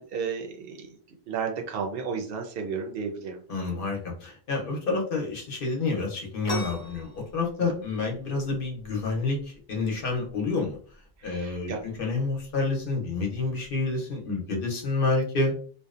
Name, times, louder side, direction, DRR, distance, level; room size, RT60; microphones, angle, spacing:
voice 1, 0.0-3.4 11.2-11.8, right 6 dB, 70° right, 3 dB, 0.7 m, -33 dB
voice 2, 3.5-10.8 11.2-15.6, left 3 dB, 60° left, 1 dB, 0.8 m, -29 dB
sound 1, 6.4-13.8, equal, 20° left, 0.6 m, -42 dB
2.5 x 2.0 x 2.4 m, 0.43 s
omnidirectional pair, 1.0 m